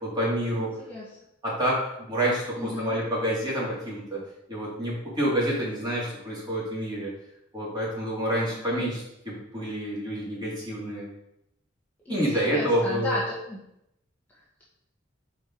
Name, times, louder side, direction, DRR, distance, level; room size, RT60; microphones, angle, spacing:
voice 1, 0.0-0.7 1.4-4.2 4.5-7.1 7.5-11.1 12.1-13.2, right 1 dB, 20° right, -6 dB, 2.4 m, -28 dB
voice 2, 2.5-3.0 8.4-8.8 12.0-13.6, left 1 dB, 10° left, -8 dB, 1.5 m, -34 dB
5.6 x 5.0 x 4.5 m, 0.80 s
head